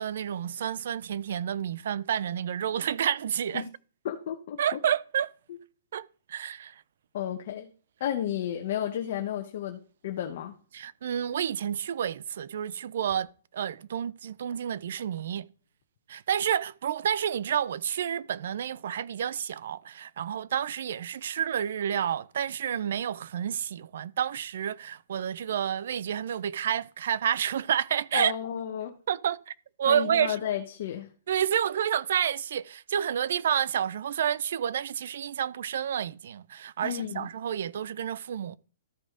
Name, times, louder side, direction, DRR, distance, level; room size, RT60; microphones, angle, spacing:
voice 1, 0.0-3.7 4.6-5.3 5.9-6.8 10.7-13.3 13.5-15.5 16.1-28.3 29.1-30.4 31.3-38.6, right 9 dB, 65° right, 0.4 m, -29 dB
voice 2, 4.0-4.8 7.1-7.7 8.0-10.5 28.1-28.9 29.9-31.1 36.8-37.3, left 10 dB, 50° left, 1.0 m, -32 dB
13.5 x 4.9 x 3.7 m
hypercardioid pair, 160°, 0 cm